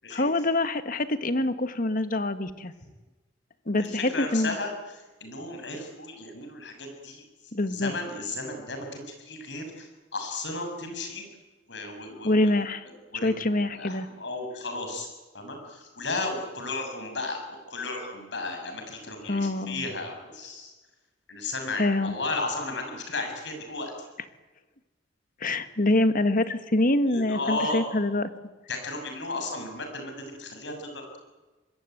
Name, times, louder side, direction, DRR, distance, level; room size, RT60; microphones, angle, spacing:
voice 1, 0.1-2.7 3.7-4.5 7.5-7.9 12.2-12.8 13.2-14.1 19.3-19.8 21.8-22.1 25.4-28.3, left 2 dB, 50° left, 11 dB, 1.6 m, -25 dB
voice 2, 3.8-4.7 5.2-7.2 7.7-11.2 11.7-12.5 13.1-15.1 15.3-20.7 21.3-23.9 27.1-27.8 28.7-31.2, left 2 dB, 70° left, 4 dB, 7.3 m, -34 dB
25.5 x 21.0 x 9.4 m, 1.2 s
head